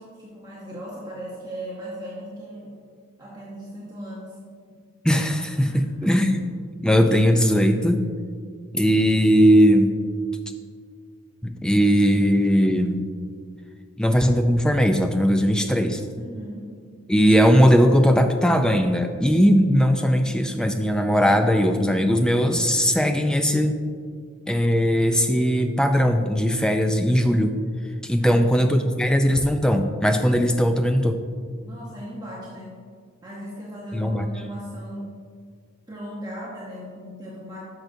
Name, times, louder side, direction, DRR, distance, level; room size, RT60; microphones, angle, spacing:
voice 1, 0.0-2.7 3.2-4.4 4.7-4.9 5.6-6.1 16.2-16.8 28.2-28.6 31.6-32.8 33.2-35.1 35.9-37.6, equal, 15° right, -6 dB, 0.9 m, -37 dB
voice 2, 5.0-6.4 6.8-8.0 8.7-9.9 11.4-13.0 14.0-16.0 17.1-23.8 24.5-27.6 28.0-31.2 33.9-34.3, equal, 5° left, 6 dB, 0.3 m, -19 dB
10.5 x 6.3 x 2.7 m, 2.1 s
head